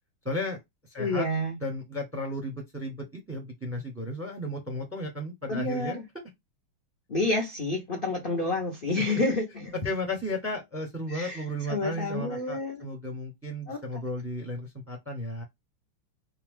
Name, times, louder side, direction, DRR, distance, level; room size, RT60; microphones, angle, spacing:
voice 1, 0.2-0.6 0.9-1.3 1.6-6.0 9.0-9.2 9.8-15.4, left 1 dB, 10° right, 0.8 m, -34 dB
voice 2, 1.0-1.5 5.5-5.9 7.1-9.8 11.1-12.8 13.7-13.8, left 2 dB, 50° left, 0.6 m, -29 dB
4.2 x 2.4 x 3.7 m
omnidirectional pair, 2.4 m